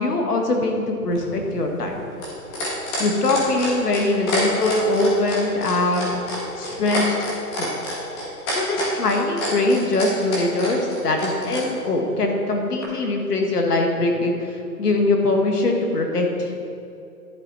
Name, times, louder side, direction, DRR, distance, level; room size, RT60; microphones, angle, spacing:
voice 1, 0.0-2.0 3.0-6.2 6.6-7.2 7.6-7.7 8.5-14.4 14.8-16.6, left 2 dB, 70° left, 2 dB, 2.0 m, -22 dB
sound 1, 1.1-11.6 12.8-12.9, left 1 dB, 15° left, 1.6 m, -28 dB
11.0 x 8.6 x 4.3 m, 2.6 s
hypercardioid pair, 155°, 49 cm